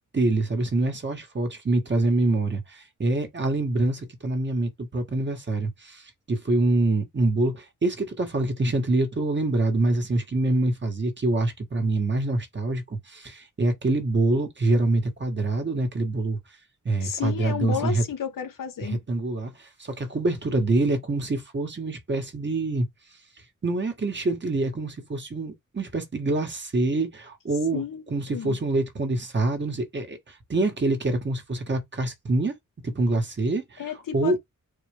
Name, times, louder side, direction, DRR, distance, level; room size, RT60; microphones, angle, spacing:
voice 1, 0.1-16.4 16.8-18.0 18.8-22.9 23.6-32.5 32.8-33.8 34.1-34.4, right 2 dB, 35° right, 1.5 m, -25 dB
voice 2, 17.0-19.0 27.7-28.6 33.8-34.4, left 7 dB, 90° left, 1.2 m, -32 dB
4.3 x 3.1 x 3.4 m
wide cardioid pair, 155°, 32 cm